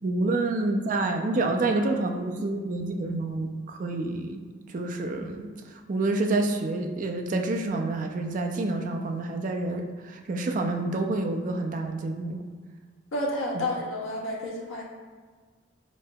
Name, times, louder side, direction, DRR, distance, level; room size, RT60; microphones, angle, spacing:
voice 1, 0.0-4.4 4.7-12.4 13.5-13.6, right 2 dB, 40° right, 4 dB, 0.3 m, -28 dB
voice 2, 13.1-14.8, left 1 dB, 90° left, -3 dB, 0.6 m, -30 dB
5.2 x 2.7 x 2.2 m, 1.5 s
head